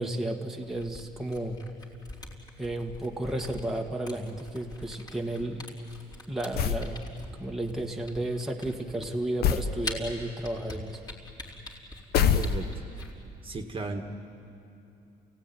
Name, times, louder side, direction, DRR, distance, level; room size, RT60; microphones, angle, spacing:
voice 1, 0.0-1.6 2.6-5.7 6.3-7.1 7.4-11.0, right 1 dB, ahead, 0 dB, 1.8 m, -33 dB
Camera, 0.6-13.1, left 1 dB, 25° left, 4.4 m, -44 dB
sound 1, 6.5-6.9 9.4-9.7 12.1-12.9, left 8 dB, 70° left, 1.1 m, -24 dB
voice 2, 12.3-12.7 13.4-14.0, right 3 dB, 30° right, 4 dB, 1.8 m, -35 dB
28.5 x 17.5 x 9.8 m, 2.7 s
cardioid pair, 110°, 17 cm